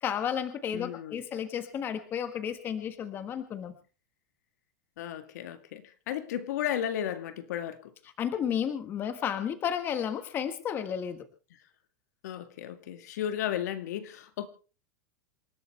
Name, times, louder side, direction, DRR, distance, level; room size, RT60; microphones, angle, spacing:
voice 1, 0.0-3.7 8.2-11.3, left 8 dB, 25° left, 1.4 m, -32 dB
voice 2, 0.7-1.2 5.0-7.9 12.2-14.5, left 10 dB, 70° left, 2.0 m, -34 dB
27.5 x 12.5 x 3.4 m
supercardioid pair, 165°, 9 cm